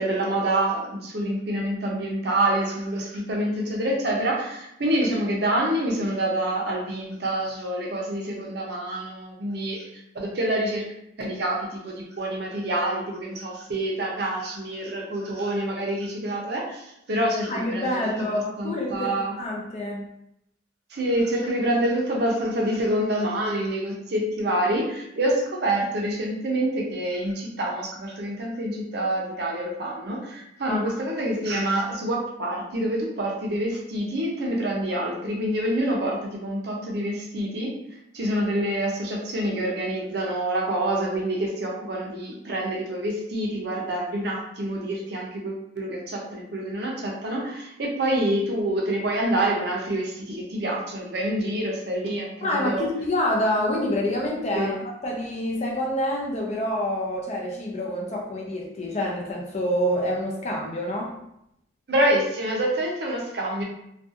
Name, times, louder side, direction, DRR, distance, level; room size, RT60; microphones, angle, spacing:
voice 1, 0.0-9.8 10.1-10.9 11.2-18.0 18.3-19.4 20.9-37.8 38.1-52.8 54.5-54.8 61.9-63.6, right 1 dB, 55° right, -1 dB, 0.5 m, -27 dB
voice 2, 17.5-19.1 19.4-20.1 30.7-31.0 52.4-61.2, left 1 dB, 35° left, -1 dB, 0.4 m, -27 dB
2.4 x 2.3 x 2.6 m, 0.80 s
head